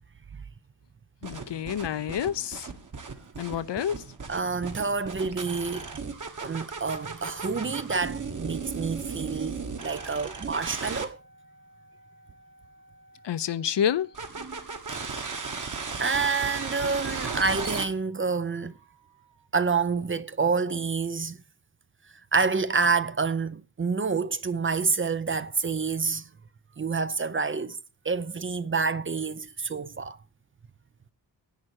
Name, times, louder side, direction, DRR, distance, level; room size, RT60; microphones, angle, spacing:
voice 1, 1.2-2.7 3.4-4.0 13.2-14.1, left 9 dB, 75° left, 0.7 m, -28 dB
sound 1, 1.2-11.1 14.1-17.8, right 4 dB, 45° right, 1.6 m, -36 dB
voice 2, 4.3-5.9 6.4-11.2 14.4-14.6 16.0-18.7 19.5-21.4 22.3-26.2 26.8-27.8 28.0-30.2, right 4 dB, 30° right, 0.5 m, -28 dB
10.5 x 8.7 x 4.7 m
wide cardioid pair, 135°, 42 cm